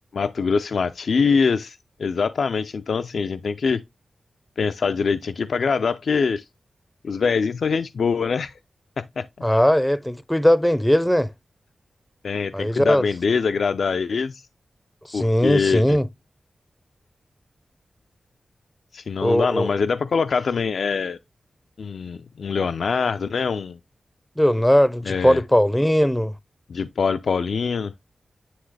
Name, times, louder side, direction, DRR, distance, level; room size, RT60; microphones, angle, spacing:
voice 1, 0.1-3.8 4.6-6.4 7.0-8.5 9.0-9.3 12.2-14.4 15.1-16.0 18.9-21.2 21.8-23.8 25.1-25.4 26.7-27.9, left 5 dB, 75° left, 0.3 m, -24 dB
voice 2, 9.4-11.3 12.5-13.0 15.1-16.1 19.2-19.7 24.4-26.3, equal, 5° left, 0.4 m, -19 dB
9.4 x 3.4 x 3.2 m
wide cardioid pair, 125°, 0 cm